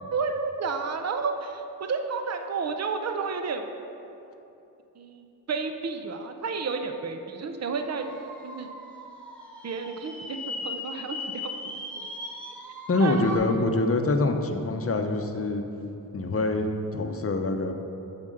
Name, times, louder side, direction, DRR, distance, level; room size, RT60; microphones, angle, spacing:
voice 1, 0.1-3.7 5.0-8.1 8.4-8.7 9.6-12.1 13.0-13.2, right 5 dB, 45° right, 6 dB, 0.6 m, -31 dB
sound 1, 7.7-13.4, left 2 dB, 5° left, 1.4 m, -38 dB
voice 2, 12.9-15.6 16.1-17.7, left 2 dB, 40° left, 5 dB, 0.7 m, -25 dB
7.5 x 4.4 x 6.4 m, 2.8 s
cardioid pair, 60°, 37 cm